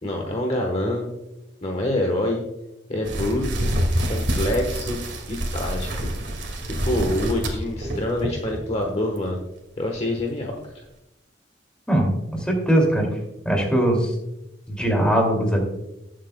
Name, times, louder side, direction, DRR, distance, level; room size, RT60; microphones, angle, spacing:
voice 1, 0.0-1.1 1.6-2.4 2.9-3.7 4.1-5.0 5.3-5.9 6.7-9.4 9.8-10.6, left 1 dB, 35° left, 2 dB, 1.1 m, -26 dB
sound 1, 3.0-8.8 9.2-9.4 10.0-10.1 10.5-10.6, right 1 dB, 65° right, 2.0 m, -26 dB
voice 2, 12.5-13.1 13.5-14.1 14.7-15.6, right 1 dB, 5° left, 0 dB, 2.4 m, -20 dB
18.5 x 7.7 x 2.2 m, 0.90 s
head